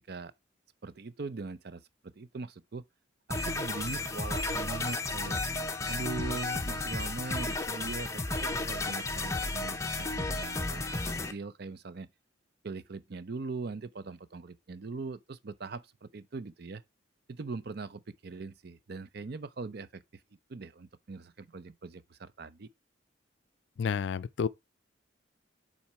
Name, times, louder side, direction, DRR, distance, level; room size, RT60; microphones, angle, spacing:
voice 1, 0.8-2.8 3.3-5.4 5.9-12.1 12.6-16.8 17.3-20.0 20.5-22.7, right 4 dB, 55° right, 0.5 m, -41 dB
sound 1, 3.3-11.3, left 2 dB, 15° left, 0.7 m, -33 dB
voice 2, 23.8-24.5, left 6 dB, 65° left, 0.3 m, -30 dB
7.2 x 4.2 x 4.6 m
head